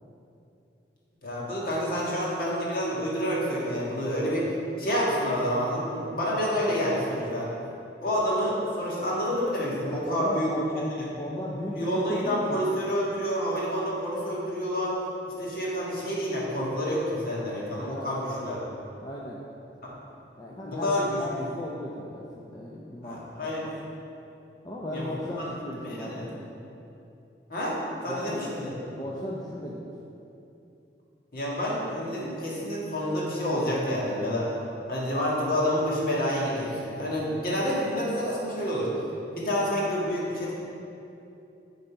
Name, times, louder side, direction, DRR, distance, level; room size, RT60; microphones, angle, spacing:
voice 1, 1.2-4.5 4.8-7.5 8.0-10.5 11.0-11.1 11.7-15.0 15.4-18.6 19.8-19.9 20.5-21.2 23.0-23.7 24.9-25.1 25.4-25.5 25.8-26.2 27.5-28.7 31.3-34.5 34.9-38.9 39.3-40.5, equal, 55° left, -5 dB, 1.8 m, -28 dB
voice 2, 9.9-12.7 17.9-18.5 19.0-19.4 20.4-23.5 24.6-26.4 28.1-28.5 28.9-29.9, left 1 dB, 20° left, -4 dB, 0.6 m, -36 dB
8.9 x 4.0 x 5.7 m, 2.8 s
head